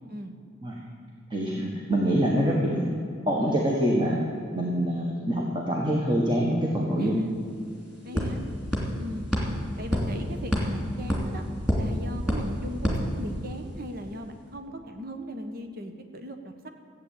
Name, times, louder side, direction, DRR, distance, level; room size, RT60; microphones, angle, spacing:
voice 1, 1.3-2.9 3.3-4.2 4.5-7.2, equal, 25° right, -2 dB, 1.5 m, -25 dB
sound 1, 7.0-7.1 7.4-13.8, equal, 5° right, 2.9 m, -29 dB
voice 2, 7.0-7.3 8.0-8.4 9.0-9.3 9.8-11.4 11.8-16.7, equal, 50° right, 6 dB, 1.1 m, -38 dB
14.5 x 8.6 x 8.4 m, 2.4 s
head